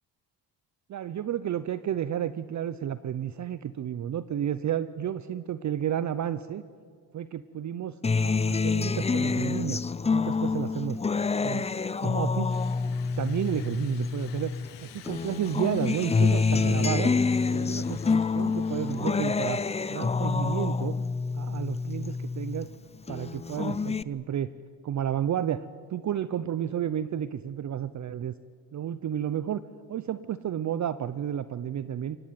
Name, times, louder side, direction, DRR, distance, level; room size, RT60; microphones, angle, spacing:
voice 1, 0.9-6.6 7.1-9.8 10.1-11.0 11.4-11.7 11.9-12.5 13.2-14.5 14.8-17.1 17.5-19.6 19.9-21.0 21.3-22.7 23.1-24.5 24.8-28.3 28.7-29.6 29.9-32.2, right 10 dB, 40° right, 15 dB, 0.8 m, -31 dB
Acoustic guitar, 8.0-14.7 15.1-22.7 23.1-24.0, left 4 dB, 15° left, 0.6 m, -27 dB
sound 1, 12.5-19.1, left 12 dB, 70° left, 1.5 m, -49 dB
24.0 x 19.0 x 9.4 m, 2.1 s
supercardioid pair, 90°, 45 cm